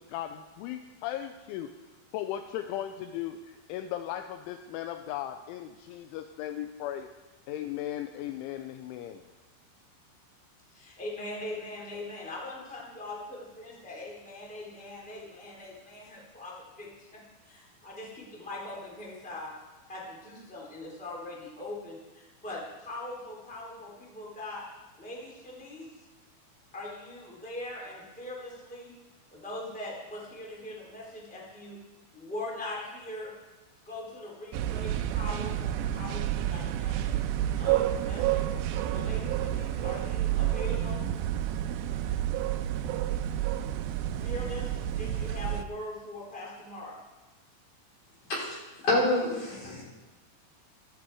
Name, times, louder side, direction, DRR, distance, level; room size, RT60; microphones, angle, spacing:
voice 1, 0.0-1.7 2.1-7.1 7.5-9.2, left 11 dB, 85° left, 8 dB, 2.9 m, -37 dB
voice 2, 10.7-19.5 19.9-24.6 25.0-25.9 26.7-28.9 29.3-31.8 32.1-33.3 33.8-37.1 37.5-38.4 38.9-41.0 44.2-47.0, left 1 dB, ahead, -4 dB, 2.7 m, -41 dB
sound 1, 34.5-45.6, right 12 dB, 90° right, 2.4 m, -30 dB
voice 3, 48.8-49.8, left 2 dB, 40° left, -5 dB, 5.4 m, -26 dB
15.0 x 13.0 x 4.8 m, 1.2 s
omnidirectional pair, 5.6 m